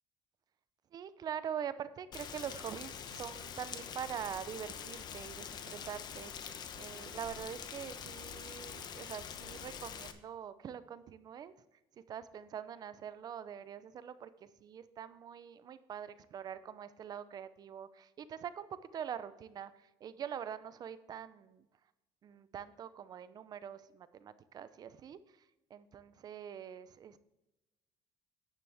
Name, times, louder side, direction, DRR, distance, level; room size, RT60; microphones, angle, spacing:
voice 1, 0.9-6.3 6.8-11.5 12.1-14.3 14.6-18.7 18.9-19.7 20.0-21.7 22.2-25.2 25.7-27.2, right 8 dB, 45° right, 14 dB, 0.6 m, -44 dB
Rain, 2.1-10.1, left 7 dB, 45° left, 1.0 m, -45 dB
9.7 x 9.7 x 3.5 m, 0.96 s
cardioid pair, 125°, 10 cm